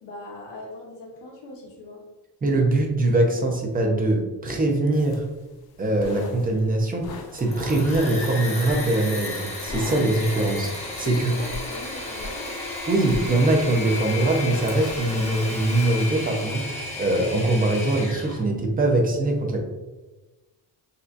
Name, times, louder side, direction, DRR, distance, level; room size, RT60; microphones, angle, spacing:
voice 1, 0.0-2.0 11.0-12.6, left 2 dB, 75° left, -2 dB, 1.3 m, -39 dB
voice 2, 2.4-5.2 5.8-11.3 12.9-19.6, right 2 dB, 20° right, 2 dB, 0.6 m, -22 dB
sound 1, 4.9-16.3, left 3 dB, 60° left, 0.6 m, -42 dB
Engine / Mechanisms, 7.2-18.4, left 2 dB, 15° left, 1.0 m, -33 dB
6.7 x 2.7 x 2.5 m, 1.1 s
wide cardioid pair, 180°, 43 cm